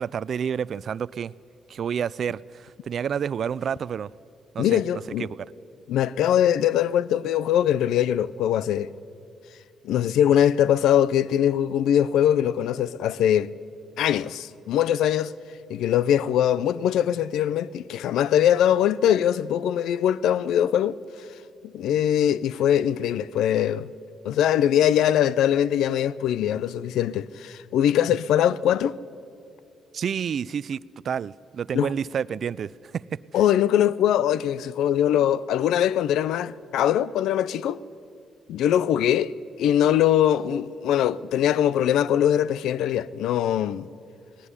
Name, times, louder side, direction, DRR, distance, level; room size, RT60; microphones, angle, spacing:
voice 1, 0.0-1.3 1.7-4.1 4.5-4.8 5.2-5.3 29.9-30.8 31.0-33.2, right 7 dB, 55° right, 0.4 m, -29 dB
voice 2, 4.6-5.3 5.9-8.9 9.8-13.5 14.0-15.3 15.7-21.0 21.7-23.9 24.2-29.0 31.7-31.9 33.3-37.8 38.5-43.9, left 10 dB, 85° left, 0.5 m, -22 dB
19.0 x 18.0 x 9.8 m
cardioid pair, 90°, 0 cm